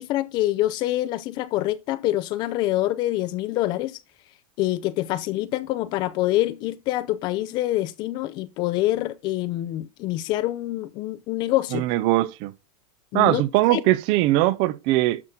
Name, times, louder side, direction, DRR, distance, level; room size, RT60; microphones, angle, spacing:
voice 1, 0.0-4.0 4.6-11.9 13.1-13.4 13.7-13.8, left 15 dB, 25° left, 0.5 m, -25 dB
voice 2, 11.7-12.5 13.1-15.2, right 16 dB, 30° right, 0.4 m, -21 dB
12.0 x 5.9 x 3.7 m
supercardioid pair, 180°, 17 cm